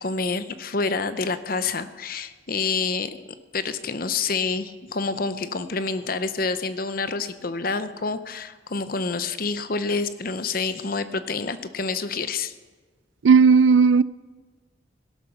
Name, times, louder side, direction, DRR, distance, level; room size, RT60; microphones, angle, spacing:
voice 1, 0.0-12.5, left 4 dB, 50° left, 0.8 m, -28 dB
voice 2, 13.2-14.0, right 5 dB, 80° right, 0.4 m, -14 dB
18.0 x 12.0 x 5.8 m
head